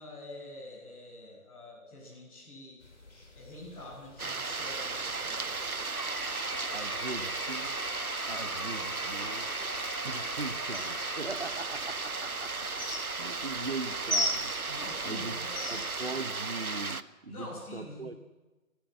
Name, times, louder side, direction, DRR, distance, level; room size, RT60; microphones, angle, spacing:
voice 1, 0.0-2.8 3.3-5.6 14.7-15.6 16.0-16.2 17.3-18.1, left 1 dB, 10° left, -7 dB, 5.7 m, -46 dB
sound 1, 2.8-16.1, equal, 55° left, 7.4 m, -41 dB
sound 2, 4.2-17.0, right 4 dB, 75° right, 1.3 m, -35 dB
sound 3, 6.0-11.2, left 1 dB, 85° left, 4.2 m, -41 dB
voice 2, 6.7-7.8 8.3-9.5 10.0-12.7 13.1-15.4 15.7-18.1, right 3 dB, 45° right, 9 dB, 1.1 m, -40 dB
28.5 x 15.5 x 7.9 m, 1.2 s
figure-of-eight pair, 165°, 43 cm